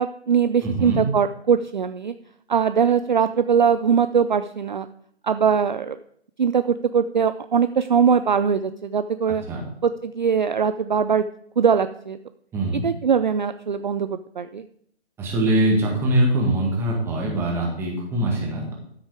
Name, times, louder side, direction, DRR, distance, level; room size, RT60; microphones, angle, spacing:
voice 1, 0.0-2.1 2.5-4.9 5.2-6.0 6.4-9.4 9.8-11.3 11.6-12.2 12.7-14.7, right 7 dB, 45° right, 11 dB, 0.4 m, -21 dB
voice 2, 0.6-1.0 9.5-9.6 12.5-12.9 15.2-18.7, right 1 dB, 5° right, -1 dB, 1.8 m, -22 dB
13.0 x 6.2 x 4.9 m, 0.69 s
figure-of-eight pair, 145°, 33 cm